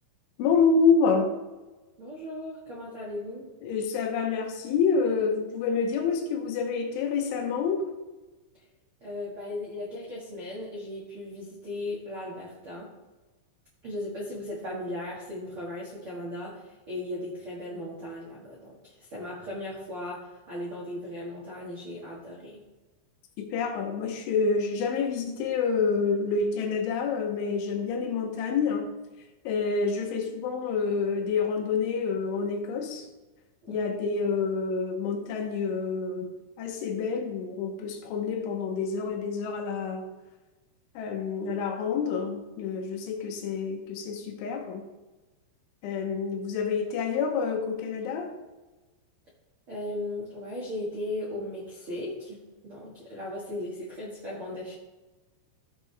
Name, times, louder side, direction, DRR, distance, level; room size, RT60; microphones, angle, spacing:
voice 1, 0.4-1.3 3.6-7.9 23.4-28.9 29.4-33.1 33.7-40.1 40.9-44.8 45.8-48.3, left 5 dB, 80° left, 3.4 m, -28 dB
voice 2, 2.0-3.5 9.0-12.9 13.8-22.6 33.7-33.9 49.7-54.7, left 1 dB, 60° right, 1.4 m, -37 dB
15.0 x 5.2 x 3.4 m
omnidirectional pair, 5.6 m